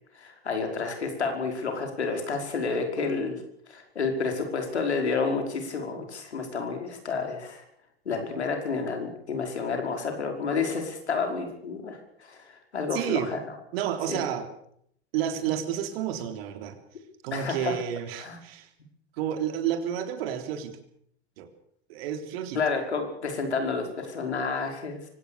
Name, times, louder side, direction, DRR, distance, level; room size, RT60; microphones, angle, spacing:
voice 1, 0.1-3.4 3.7-7.6 8.1-13.4 14.1-14.2 17.3-17.7 18.2-18.4 22.6-25.0, left 4 dB, 85° left, 4 dB, 5.3 m, -30 dB
voice 2, 12.9-13.3 13.7-14.5 15.1-16.8 17.2-18.7 19.2-20.8 21.4-21.5 21.9-22.6, right 9 dB, 65° right, 8 dB, 3.7 m, -30 dB
24.5 x 17.5 x 6.9 m, 0.68 s
hypercardioid pair, 90°, 32 cm